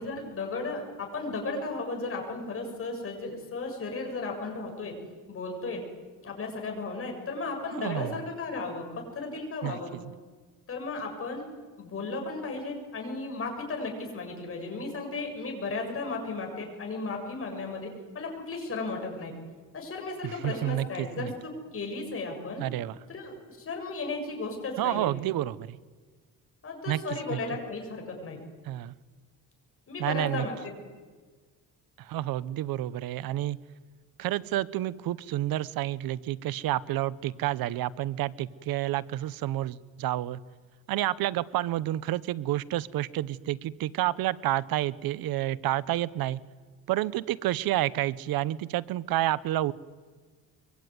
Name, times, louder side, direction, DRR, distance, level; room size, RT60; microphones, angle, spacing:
voice 1, 0.0-4.9 5.3-5.8 6.2-8.9 9.1-9.9 10.7-11.4 11.8-17.9 18.1-19.3 19.7-22.6 23.1-25.1 26.6-28.4 29.9-30.7, left 3 dB, 40° left, 2 dB, 7.4 m, -35 dB
voice 2, 7.7-8.1 9.6-9.8 20.2-21.3 22.6-23.0 24.8-25.8 26.9-27.0 27.3-27.4 28.6-28.9 30.0-30.5 32.0-33.6 34.2-40.4 40.9-46.4 46.9-49.7, right 14 dB, 75° right, 19 dB, 0.8 m, -29 dB
24.0 x 24.0 x 9.5 m, 1.4 s
cardioid pair, 125°, 36 cm